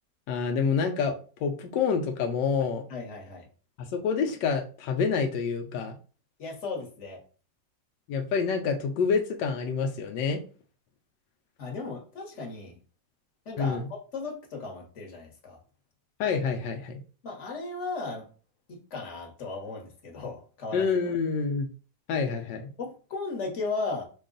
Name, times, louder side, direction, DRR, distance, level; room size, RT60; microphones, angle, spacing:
voice 1, 0.3-2.8 3.8-6.0 8.1-10.4 13.6-13.8 16.2-17.0 20.7-21.7 22.1-22.7, left 5 dB, 85° left, 4 dB, 1.3 m, -27 dB
voice 2, 2.9-3.5 6.4-7.2 11.6-12.8 13.4-15.6 17.2-18.3 18.7-20.9 22.8-24.0, left 3 dB, 45° left, 0 dB, 1.4 m, -36 dB
5.6 x 2.3 x 3.8 m, 0.37 s
omnidirectional pair, 1.9 m